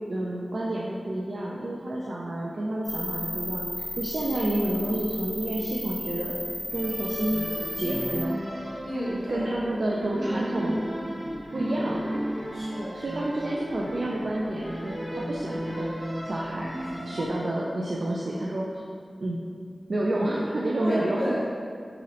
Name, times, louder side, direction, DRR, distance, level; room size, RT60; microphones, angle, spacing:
voice 1, 0.1-3.7 4.0-6.4 6.7-7.4 7.8-8.4 9.3-10.7 11.5-12.0 12.9-15.9 16.2-16.7 17.0-18.7 19.2-19.4 19.9-21.3, right 1 dB, 65° right, -4 dB, 0.4 m, -29 dB
sound 1, 2.8-8.2, left 1 dB, ahead, 0.6 m, -34 dB
sound 2, 6.7-17.3, equal, 25° right, 1.0 m, -34 dB
voice 2, 8.8-9.5 12.5-13.0 17.2-17.3 20.8-21.5, equal, 45° right, -9 dB, 1.4 m, -32 dB
4.7 x 2.9 x 3.0 m, 2.2 s
wide cardioid pair, 70°, 0 cm